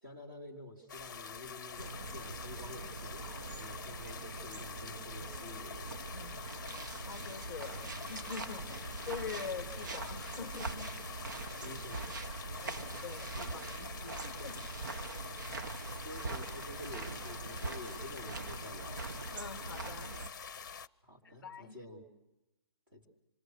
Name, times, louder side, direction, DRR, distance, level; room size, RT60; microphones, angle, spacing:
voice 1, 0.0-6.0 11.5-12.2 16.0-19.0 21.0-22.0 22.9-23.1, left 1 dB, 25° right, -2 dB, 3.2 m, -49 dB
sound 1, 0.9-20.9, left 6 dB, 45° left, 0.7 m, -46 dB
sound 2, 1.8-20.3, right 3 dB, 45° right, 1.1 m, -43 dB
voice 2, 6.1-6.5 7.0-11.0 11.6-11.8 12.6-14.7 19.3-20.2 21.2-21.8, left 5 dB, ahead, 8 dB, 1.5 m, -45 dB
26.5 x 23.5 x 6.5 m, 0.99 s
hypercardioid pair, 180°, 14 cm